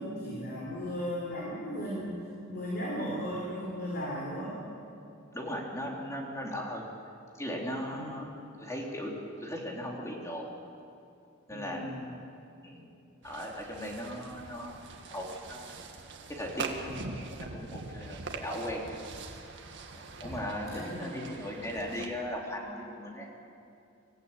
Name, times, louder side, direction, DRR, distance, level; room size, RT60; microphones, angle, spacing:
voice 1, 0.0-2.2 2.5-4.6 7.9-8.1 11.5-12.1 20.6-21.3, equal, 50° left, -4 dB, 4.2 m, -36 dB
voice 2, 5.3-6.9 7.4-8.2 8.6-9.1 9.4-10.5 11.5-12.1 12.6-12.9 13.2-14.8 15.1-15.7 16.3-19.0 19.9-23.3, equal, 15° left, -1 dB, 3.4 m, -38 dB
sound 1, 13.2-22.1, right 3 dB, 60° right, 2.0 m, -43 dB
25.5 x 15.5 x 8.9 m, 2.7 s
head